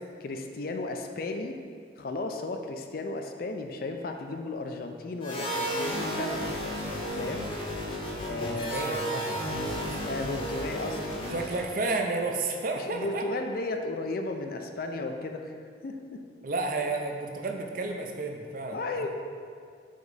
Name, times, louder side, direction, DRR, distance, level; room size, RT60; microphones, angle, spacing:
voice 1, 0.2-1.6 2.0-6.5 7.2-7.5 8.2-8.8 10.0-11.4 12.7-15.5 15.8-16.2 18.7-19.1, left 2 dB, 50° left, 5 dB, 0.4 m, -34 dB
sound 1, 5.2-11.8, equal, 25° left, 0.8 m, -33 dB
voice 2, 8.4-10.0 11.3-13.3 16.4-19.1, right 3 dB, 45° right, 3 dB, 0.5 m, -32 dB
5.0 x 4.7 x 4.0 m, 2.2 s
head